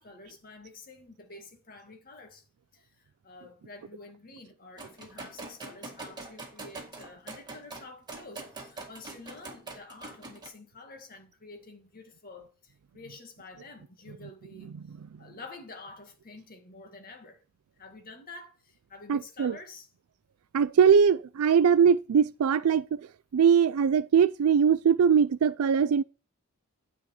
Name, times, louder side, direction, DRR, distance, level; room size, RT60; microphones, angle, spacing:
voice 1, 0.0-2.4 2.7-14.7 15.2-17.4 17.8-19.9, left 3 dB, 45° left, 2.0 m, -49 dB
sound 1, 4.8-10.5, right 3 dB, 20° right, 1.9 m, -43 dB
voice 2, 19.1-19.6 20.5-23.0 23.3-26.0, right 7 dB, 85° right, 0.4 m, -21 dB
9.5 x 4.3 x 7.1 m
head